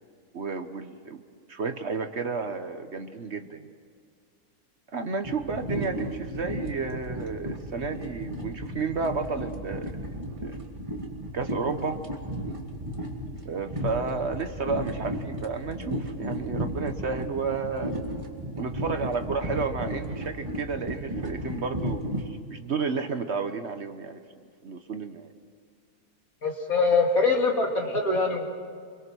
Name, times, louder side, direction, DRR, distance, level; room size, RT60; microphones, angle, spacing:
voice 1, 0.3-1.2 1.5-3.7 4.9-10.6 11.3-12.0 13.4-17.9 18.6-24.2 24.6-25.3, right 4 dB, 50° right, 8 dB, 1.3 m, -32 dB
sound 1, 5.2-22.3, equal, 20° right, 2.3 m, -34 dB
voice 2, 26.4-28.5, left 3 dB, 65° left, 1 dB, 3.2 m, -23 dB
25.5 x 23.5 x 6.3 m, 2.2 s
omnidirectional pair, 1.6 m